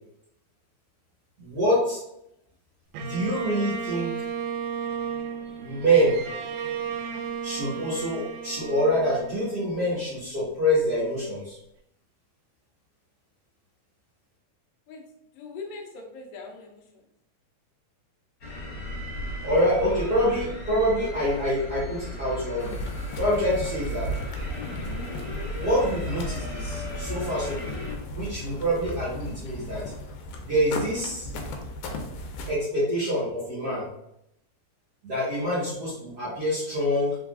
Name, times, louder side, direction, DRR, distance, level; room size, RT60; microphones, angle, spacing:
voice 1, 1.4-2.0 3.0-4.1 5.6-6.2 7.4-11.6 19.4-22.8 23.2-24.1 25.6-27.8 28.1-29.8 30.4-31.3 32.5-33.9 35.0-37.1, equal, 50° right, -9 dB, 1.2 m, -26 dB
Bowed string instrument, 2.9-10.2, right 6 dB, 85° right, 2.1 m, -34 dB
voice 2, 15.3-17.0, left 4 dB, 70° left, 0 dB, 2.0 m, -41 dB
sound 1, 18.4-27.9, left 1 dB, 40° left, 1.5 m, -36 dB
sound 2, 22.6-32.5, left 1 dB, 90° left, 2.2 m, -36 dB
4.8 x 3.6 x 2.4 m, 0.78 s
omnidirectional pair, 3.7 m